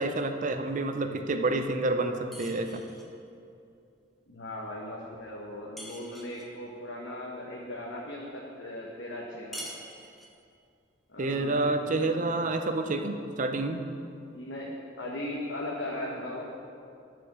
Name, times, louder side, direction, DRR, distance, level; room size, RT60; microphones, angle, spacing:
voice 1, 0.0-2.8 11.2-13.8, right 2 dB, 45° right, 7 dB, 0.6 m, -28 dB
sound 1, 2.3-3.2 5.8-6.5 9.5-10.5, equal, ahead, 0.9 m, -44 dB
voice 2, 4.3-9.7 11.1-12.3 14.3-14.7 15.0-16.4, left 1 dB, 90° left, -3 dB, 1.1 m, -38 dB
11.5 x 5.1 x 6.0 m, 2.5 s
head